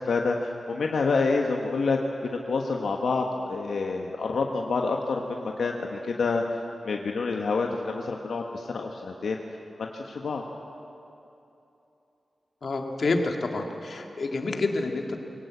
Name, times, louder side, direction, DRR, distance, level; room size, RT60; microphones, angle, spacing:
voice 1, 0.0-9.4 9.8-10.4, left 4 dB, 80° left, 1 dB, 1.3 m, -28 dB
voice 2, 12.6-15.2, left 3 dB, 60° left, 3 dB, 2.1 m, -28 dB
22.5 x 18.0 x 8.4 m, 2.9 s
wide cardioid pair, 105°, 0 cm